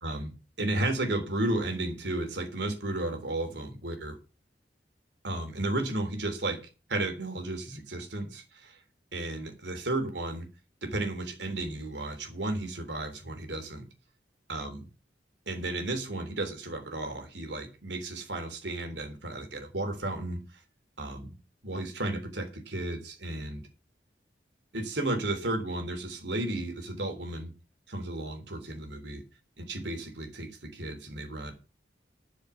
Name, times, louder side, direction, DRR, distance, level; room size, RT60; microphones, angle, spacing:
voice 1, 0.0-4.2 5.2-6.6 6.9-8.8 9.1-10.5 10.8-13.8 14.5-14.9 15.5-20.4 21.0-21.3 21.6-23.6 24.7-27.5 27.9-29.2 29.6-31.5, right 2 dB, 85° right, 3.3 m, -33 dB
12.0 x 6.4 x 7.0 m
head